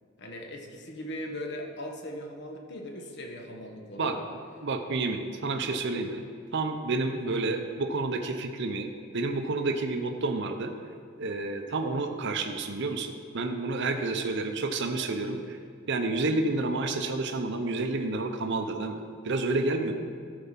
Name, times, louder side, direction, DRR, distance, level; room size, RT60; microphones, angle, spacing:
voice 1, 0.2-4.2 7.1-7.4 14.1-14.2, left 1 dB, 60° left, 2 dB, 1.2 m, -39 dB
voice 2, 4.6-6.2 6.5-10.7 11.2-15.6 15.9-19.9, right 3 dB, 60° right, 5 dB, 0.7 m, -30 dB
13.5 x 4.9 x 5.8 m, 2.2 s
head